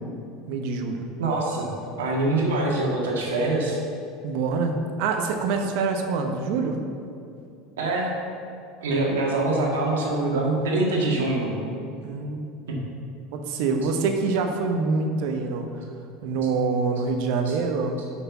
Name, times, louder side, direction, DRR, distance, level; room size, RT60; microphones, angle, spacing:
voice 1, 0.5-1.0 4.2-6.8 12.0-12.5 13.3-15.7 16.2-18.0, right 4 dB, 70° right, 4 dB, 1.0 m, -25 dB
voice 2, 1.2-1.7 2.0-3.8 7.8-8.1 8.8-11.5 12.7-12.8 17.5-17.6, right 2 dB, 85° right, -2 dB, 1.8 m, -24 dB
6.2 x 5.7 x 7.1 m, 2.5 s
hypercardioid pair, 90°, 0 cm